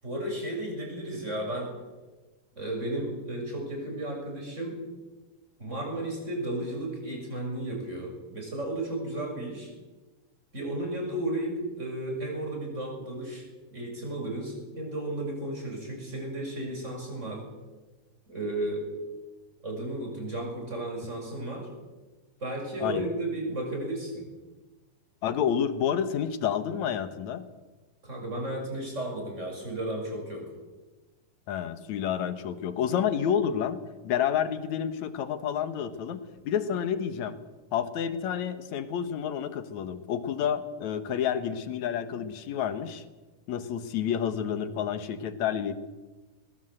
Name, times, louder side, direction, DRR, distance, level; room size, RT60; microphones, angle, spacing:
voice 1, 0.0-1.7 2.6-4.8 5.6-9.7 10.5-17.4 18.3-18.9 19.6-21.7 22.4-24.3 28.0-30.5, right 1 dB, 20° right, 1 dB, 7.1 m, -34 dB
voice 2, 25.2-27.5 31.5-37.4 37.7-43.0 43.5-45.7, left 8 dB, 65° left, 11 dB, 2.5 m, -29 dB
21.0 x 21.0 x 8.0 m, 1.2 s
omnidirectional pair, 3.7 m